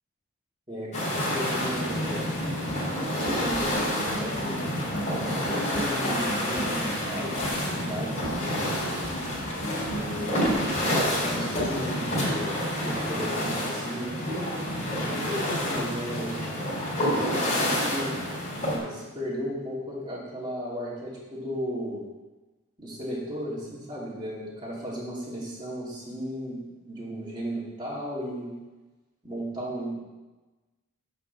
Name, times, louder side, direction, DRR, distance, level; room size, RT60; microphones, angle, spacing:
voice 1, 0.7-2.2 3.0-4.7 5.1-8.7 9.7-12.6 12.8-14.2 14.9-16.4 17.0-18.2 18.6-22.0 22.8-28.5 29.2-29.9, equal, 20° right, -7 dB, 2.7 m, -35 dB
sound 1, 0.9-18.8, left 1 dB, 35° left, 3.2 m, -29 dB
sound 2, 2.4-12.0, equal, 85° left, 2.0 m, -38 dB
8.7 x 5.1 x 6.8 m, 1.2 s
head